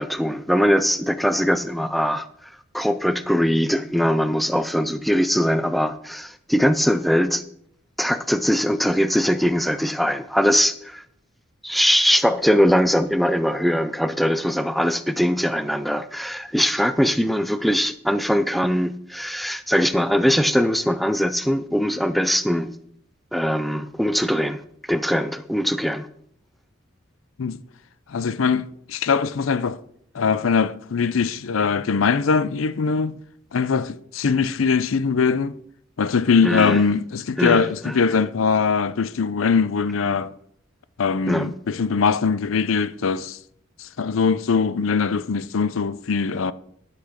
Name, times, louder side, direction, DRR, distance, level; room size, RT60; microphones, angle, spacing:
voice 1, 0.0-7.4 8.0-11.0 11.6-22.7 23.3-24.6 24.9-26.1 36.4-36.8 37.4-37.9 41.3-41.5, equal, ahead, 0.4 m, -21 dB
voice 2, 28.1-29.8 30.1-33.1 33.5-35.6 36.0-40.3 41.0-43.4 43.8-46.5, left 5 dB, 90° left, 0.5 m, -21 dB
11.5 x 6.0 x 5.0 m
head